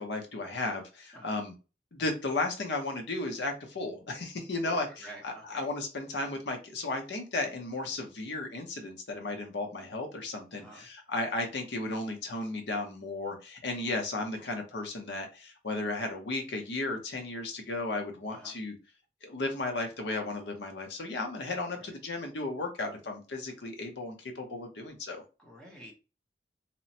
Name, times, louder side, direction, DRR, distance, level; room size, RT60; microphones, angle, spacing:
voice 1, 0.0-1.5 1.9-18.7 19.2-25.2, left 2 dB, 70° left, 3 dB, 0.7 m, -34 dB
voice 2, 4.6-5.7 10.5-10.9 18.3-18.6 21.7-21.9 25.4-26.0, equal, 5° left, -2 dB, 0.6 m, -49 dB
2.9 x 2.0 x 2.7 m, 0.32 s
head